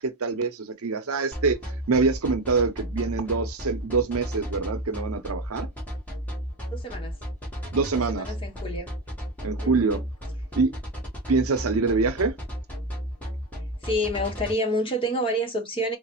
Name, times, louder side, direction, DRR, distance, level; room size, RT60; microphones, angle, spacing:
voice 1, 0.0-1.6 1.9-5.7 7.7-8.2 9.4-10.0 10.6-10.8 11.3-12.4, right 4 dB, 85° right, 0.7 m, -25 dB
sound 1, 1.3-14.5, equal, 5° left, 1.1 m, -33 dB
voice 2, 6.7-7.2 7.9-8.9 9.6-10.0 13.8-16.0, equal, 25° left, 0.9 m, -28 dB
3.9 x 2.0 x 2.9 m
head